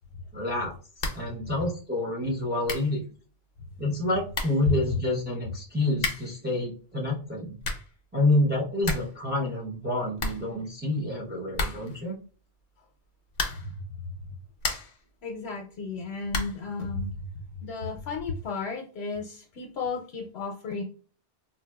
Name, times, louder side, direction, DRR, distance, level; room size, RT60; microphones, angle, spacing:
voice 1, 0.3-0.7 1.1-3.0 3.8-7.6 8.1-12.2, left 2 dB, 10° right, -4 dB, 0.7 m, -28 dB
sound 1, 1.0-1.4 1.6-1.7 2.3-2.4 2.6-3.0 3.9-4.0 4.3-4.7 5.9-6.4 7.4-8.0 8.3-8.4 8.6-9.2 9.5-9.6 9.8-9.9 10.2-11.0 11.5-12.0 13.3-13.8 14.3-15.0 16.3-16.7, left 3 dB, 55° left, 0.7 m, -32 dB
voice 2, 15.2-17.3 17.6-20.8, left 4 dB, 85° left, 1 dB, 0.8 m, -34 dB
4.1 x 2.3 x 2.2 m, 0.39 s
omnidirectional pair, 1.0 m